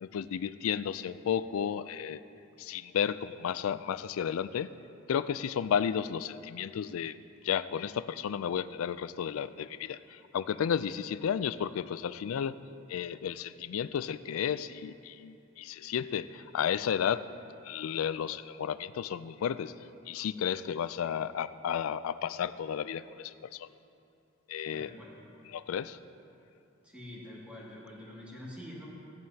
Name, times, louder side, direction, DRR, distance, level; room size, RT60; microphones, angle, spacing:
voice 1, 0.0-2.2 2.6-4.7 5.1-7.2 7.4-12.6 12.9-17.3 17.6-19.7 20.1-23.7 24.5-24.9 25.5-26.0, left 8 dB, 85° left, 15 dB, 0.3 m, -33 dB
voice 2, 24.7-25.2 26.8-28.9, left 1 dB, 5° right, -6 dB, 2.1 m, -46 dB
16.0 x 10.5 x 2.8 m, 2.6 s
head